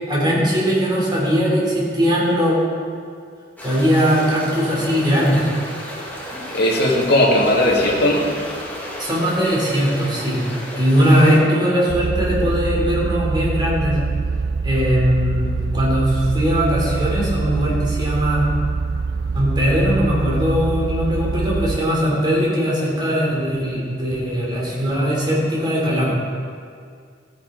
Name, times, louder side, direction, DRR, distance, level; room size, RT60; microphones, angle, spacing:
voice 1, 0.1-2.5 3.6-5.5 9.0-10.4 10.7-14.0 14.6-18.5 19.3-26.1, equal, 25° right, -5 dB, 3.3 m, -19 dB
sound 1, 3.6-11.4, left 1 dB, 10° left, 2.0 m, -33 dB
voice 2, 6.5-8.3, left 1 dB, 60° left, -1 dB, 1.8 m, -17 dB
sound 2, 11.9-21.8, right 4 dB, 65° right, 0.4 m, -24 dB
14.5 x 10.0 x 3.9 m, 2.2 s
head